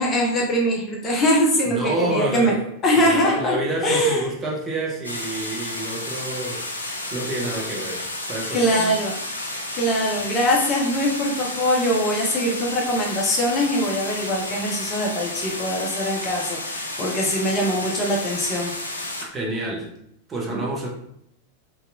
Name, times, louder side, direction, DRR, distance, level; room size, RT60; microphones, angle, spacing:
voice 1, 0.0-2.5 2.8-3.6 3.8-4.2 8.5-9.2 9.7-18.7 20.5-20.6, equal, 25° left, -1 dB, 0.5 m, -22 dB
voice 2, 1.7-2.6 2.9-9.1 9.4-9.7 19.3-19.9 20.3-20.9, right 2 dB, 20° right, -2 dB, 0.7 m, -29 dB
sound 1, 5.0-19.3, left 1 dB, 80° left, 0.4 m, -31 dB
2.7 x 2.3 x 2.5 m, 0.75 s
figure-of-eight pair, 90°, 0 cm